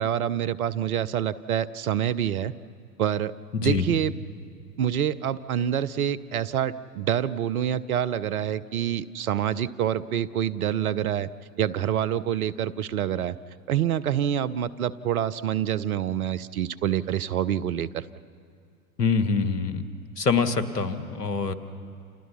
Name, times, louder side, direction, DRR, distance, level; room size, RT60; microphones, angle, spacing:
voice 1, 0.0-2.5 3.0-3.3 3.6-4.1 4.8-11.3 11.6-13.4 13.7-18.0, right 10 dB, 65° right, 16 dB, 1.0 m, -26 dB
voice 2, 3.5-3.8 19.0-19.9 20.2-21.5, left 4 dB, 80° left, 11 dB, 1.7 m, -25 dB
29.5 x 28.5 x 5.8 m, 2.3 s
figure-of-eight pair, 95°, 47 cm